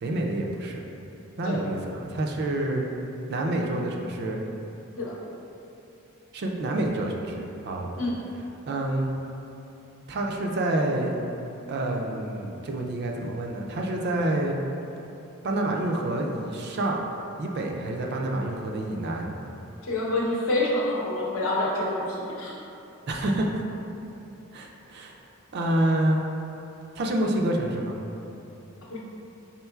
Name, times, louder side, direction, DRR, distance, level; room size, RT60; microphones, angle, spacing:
voice 1, 0.0-0.8 1.4-2.9 3.3-4.4 6.3-7.9 8.7-9.1 10.1-11.2 11.7-14.6 15.4-17.0 17.4-19.3 23.1-23.5 24.5-25.2 25.5-26.2 27.0-28.0, right 1 dB, 50° right, 1 dB, 0.4 m, -27 dB
voice 2, 19.8-22.6 28.9-29.0, left 1 dB, 65° left, -4 dB, 0.7 m, -27 dB
4.3 x 3.7 x 2.3 m, 2.9 s
head